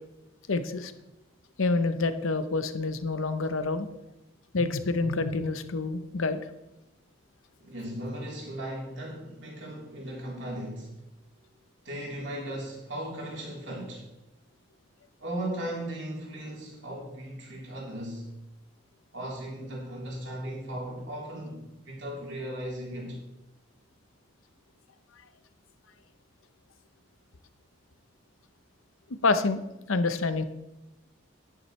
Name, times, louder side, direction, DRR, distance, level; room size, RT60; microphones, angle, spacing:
voice 1, 0.5-0.9 1.6-3.9 4.5-6.4 29.2-29.6 29.9-30.4, left 3 dB, 80° left, 10 dB, 0.8 m, -27 dB
voice 2, 7.6-10.9 11.8-14.1 15.2-18.4 19.1-23.2, right 1 dB, 60° right, -3 dB, 3.6 m, -37 dB
11.0 x 11.0 x 3.2 m, 0.96 s
head